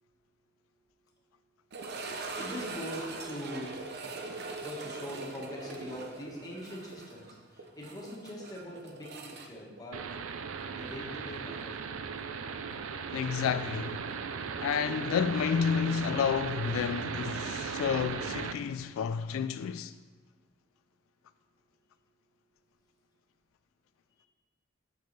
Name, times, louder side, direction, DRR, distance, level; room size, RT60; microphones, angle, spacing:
sound 1, 1.7-10.6 10.9-11.0 11.6-11.7 14.3-14.4, right 3 dB, 55° right, 0.8 m, -42 dB
voice 1, 2.4-4.1 4.6-10.1 10.7-12.1, equal, 20° left, 1.5 m, -43 dB
sound 2, 9.9-18.5, right 5 dB, 80° right, 0.5 m, -37 dB
voice 2, 13.1-14.0 14.6-19.9, left 7 dB, 90° left, 0.3 m, -30 dB
7.0 x 6.4 x 4.6 m
head